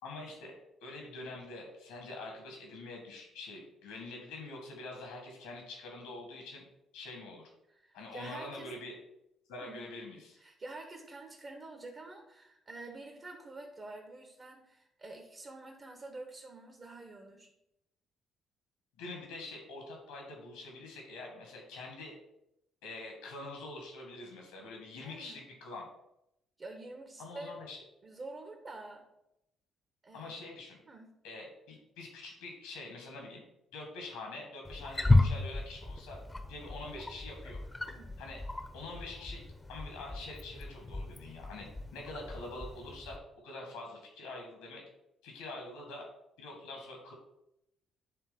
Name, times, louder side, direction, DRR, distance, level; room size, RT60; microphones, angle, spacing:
voice 1, 0.0-6.6 6.9-7.5 7.9-9.0 9.5-10.4 19.0-22.1 22.8-25.9 27.2-27.8 30.1-30.8 31.2-33.4 33.7-36.2 36.5-37.6 38.2-38.4 38.7-39.4 39.7-41.7 41.9-43.2 43.4-44.8 45.2-46.0 46.4-47.1, left 2 dB, 75° left, 1 dB, 1.9 m, -45 dB
voice 2, 7.7-8.7 9.6-9.9 10.4-17.5 25.0-25.5 26.6-27.6 28.0-29.1 30.0-30.4 30.9-31.2 36.6-36.9 37.9-38.3, right 2 dB, 40° right, 3 dB, 1.2 m, -48 dB
Wild animals, 34.6-43.2, left 2 dB, 15° left, 0.9 m, -33 dB
8.9 x 3.6 x 5.2 m, 0.84 s
figure-of-eight pair, 45°, 0 cm